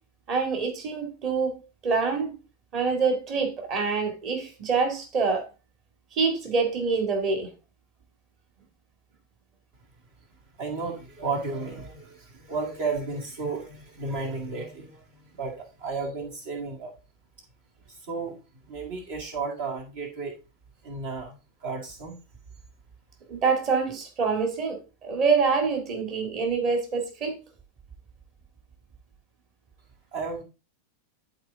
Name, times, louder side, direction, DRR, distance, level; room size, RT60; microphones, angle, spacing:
voice 1, 0.3-1.6 1.8-2.3 2.7-5.5 6.1-7.5 23.3-27.4, right 4 dB, 35° right, 2.2 m, -26 dB
voice 2, 10.6-15.1 15.3-16.9 17.9-18.4 18.7-20.4 20.8-22.2 30.1-30.4, right 4 dB, 55° right, 2.0 m, -33 dB
12.0 x 4.5 x 3.6 m
figure-of-eight pair, 90°, 0 cm